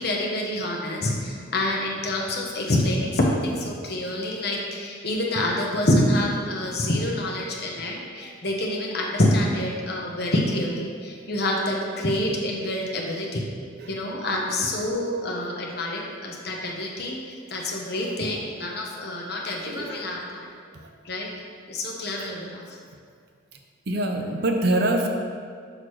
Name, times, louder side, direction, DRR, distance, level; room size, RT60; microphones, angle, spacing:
voice 1, 0.0-13.5 13.9-17.2 17.5-20.5 21.0-21.3 21.7-22.6, left 1 dB, 50° left, -1 dB, 0.9 m, -26 dB
voice 2, 17.9-18.7 19.5-20.0 20.7-20.9 22.2-22.3 23.9-25.1, right 1 dB, 50° right, 3 dB, 0.5 m, -27 dB
6.4 x 5.9 x 3.2 m, 2.1 s
head